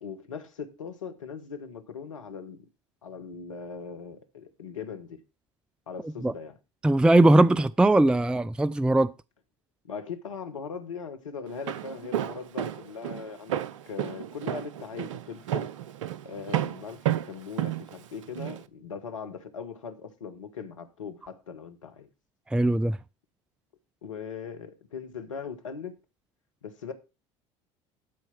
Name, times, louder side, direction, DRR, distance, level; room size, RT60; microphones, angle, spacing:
voice 1, 0.0-2.6 3.0-5.2 5.9-6.6 9.8-15.7 16.2-22.1 24.0-26.0 26.6-26.9, left 6 dB, 85° left, 1.4 m, -40 dB
voice 2, 6.8-9.1 22.5-23.0, right 2 dB, 5° right, 0.4 m, -20 dB
Walk footsteps, 11.5-18.6, right 12 dB, 75° right, 0.7 m, -32 dB
12.5 x 4.6 x 5.9 m
hypercardioid pair, 70°, 16 cm